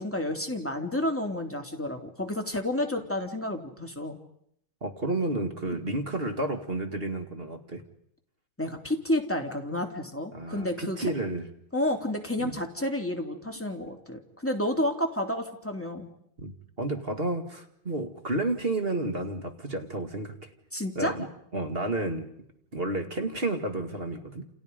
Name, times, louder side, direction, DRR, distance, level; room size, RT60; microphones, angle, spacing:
voice 1, 0.0-4.2 8.6-11.1 11.7-16.1 20.7-21.1, left 1 dB, 5° left, 3 dB, 2.9 m, -30 dB
voice 2, 4.8-7.8 10.3-11.5 12.4-12.6 16.4-20.5 21.0-22.3 22.7-24.5, right 2 dB, 25° right, 6 dB, 2.4 m, -31 dB
29.5 x 29.5 x 5.4 m, 0.73 s
omnidirectional pair, 2.3 m